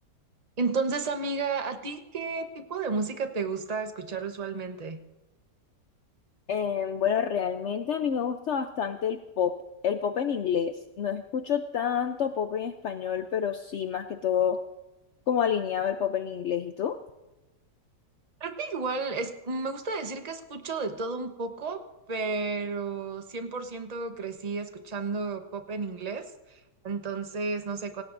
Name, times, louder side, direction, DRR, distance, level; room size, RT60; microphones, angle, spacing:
voice 1, 0.6-5.0 18.4-21.8 22.1-28.0, right 4 dB, 30° right, 6 dB, 0.9 m, -32 dB
voice 2, 6.5-9.5 9.8-14.6 15.3-17.0, left 8 dB, 65° left, 7 dB, 0.7 m, -28 dB
26.0 x 18.0 x 2.6 m, 1.0 s
omnidirectional pair, 1.9 m